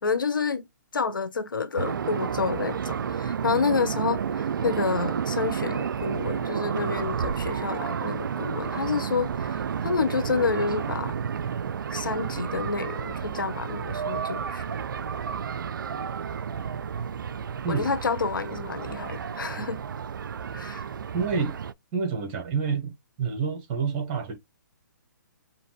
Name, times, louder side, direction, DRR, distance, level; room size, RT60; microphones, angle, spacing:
voice 1, 0.0-0.6 0.9-11.1 11.9-14.7 17.7-19.8 20.5-20.9, left 5 dB, 80° left, 1.0 m, -29 dB
sound 1, 1.8-21.7, right 7 dB, 75° right, 0.4 m, -31 dB
voice 2, 21.1-21.6 21.9-22.9 23.2-24.3, right 5 dB, 35° right, 1.7 m, -28 dB
5.1 x 2.8 x 3.1 m
hypercardioid pair, 140°, 11 cm